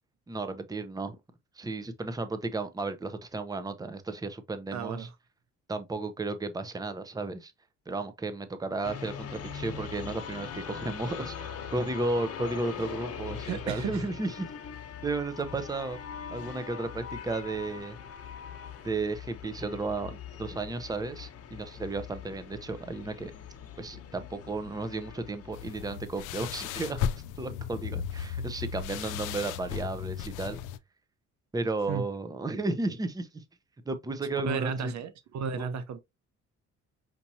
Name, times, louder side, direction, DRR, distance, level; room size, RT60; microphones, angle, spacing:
voice 1, 0.3-1.2 1.6-5.1 5.7-7.5 7.9-14.5 15.0-16.0 16.3-18.0 18.8-23.3 23.8-27.1 27.4-30.6 31.5-33.4 33.9-34.9 35.6-35.7, right 3 dB, 10° right, 0.7 m, -34 dB
voice 2, 4.7-5.1 13.4-14.1 31.9-32.0 34.4-36.0, right 6 dB, 65° right, 0.7 m, -33 dB
sound 1, 8.8-26.0, left 7 dB, 50° left, 1.1 m, -42 dB
sound 2, 25.5-30.8, left 8 dB, 85° left, 0.5 m, -35 dB
5.9 x 2.8 x 2.7 m
cardioid pair, 90°, 30 cm